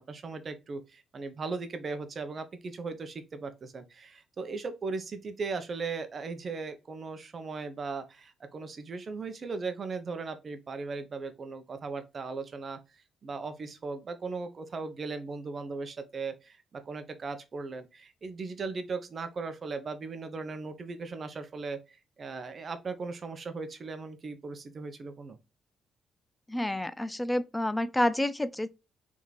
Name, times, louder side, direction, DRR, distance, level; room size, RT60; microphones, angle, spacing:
voice 1, 0.0-12.8 13.2-25.4, right 4 dB, 40° right, 0.8 m, -38 dB
voice 2, 26.5-28.7, left 1 dB, 10° left, 0.4 m, -29 dB
3.6 x 3.1 x 4.0 m
cardioid pair, 90°, 0 cm